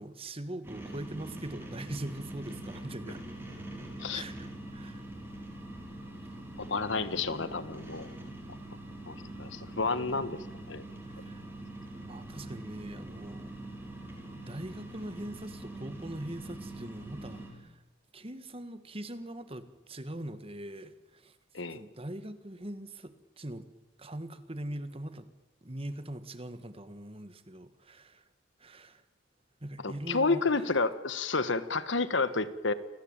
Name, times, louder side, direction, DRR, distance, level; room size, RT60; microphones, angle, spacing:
voice 1, 0.0-3.2 4.1-5.1 11.1-11.4 12.0-13.5 14.3-17.8 18.1-21.4 21.7-23.7 24.0-25.3 25.6-28.2 28.6-29.0 29.6-30.7, right 1 dB, 30° right, 11 dB, 1.6 m, -42 dB
sound 1, 0.6-17.5, right 1 dB, 10° right, 6.1 m, -44 dB
voice 2, 6.6-8.1 9.1-10.8 21.5-21.8 29.8-32.7, left 3 dB, 65° left, 13 dB, 1.5 m, -30 dB
28.5 x 19.5 x 8.9 m, 1.1 s
head